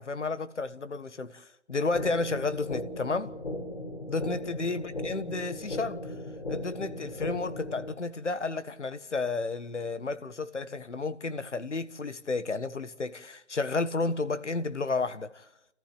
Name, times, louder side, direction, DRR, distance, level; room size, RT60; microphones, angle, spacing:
voice 1, 0.0-3.3 4.1-6.0 6.5-15.5, left 3 dB, 85° left, 1.5 m, -32 dB
sound 1, 1.9-7.9, left 1 dB, 60° left, 4.5 m, -37 dB
28.5 x 14.5 x 8.7 m
figure-of-eight pair, 175°, 35 cm